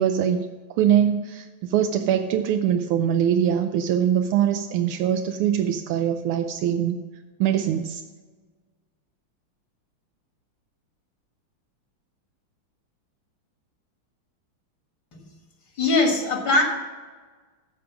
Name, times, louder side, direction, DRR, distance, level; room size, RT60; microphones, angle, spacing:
voice 1, 0.0-7.0 7.4-8.0, right 9 dB, 85° right, 7 dB, 1.4 m, -23 dB
voice 2, 15.8-16.6, left 2 dB, 65° left, 2 dB, 2.5 m, -20 dB
14.5 x 4.8 x 5.9 m, 1.4 s
omnidirectional pair, 2.3 m